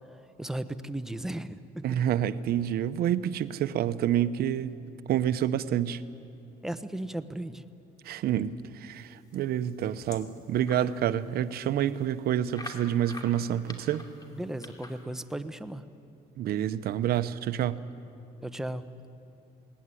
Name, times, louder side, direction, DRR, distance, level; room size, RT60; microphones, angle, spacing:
voice 1, 0.4-2.0 6.6-7.6 14.3-15.8 18.4-18.8, right 1 dB, 5° right, 9 dB, 0.9 m, -36 dB
voice 2, 1.8-4.8 5.1-6.0 8.0-14.1 16.4-17.9, right 10 dB, 65° right, 13 dB, 0.8 m, -28 dB
sound 1, 9.3-10.9 11.4-11.5 11.7-11.8 12.5-15.0, left 2 dB, 25° left, 2.8 m, -45 dB
20.5 x 18.0 x 9.8 m, 2.6 s
cardioid pair, 110°, 17 cm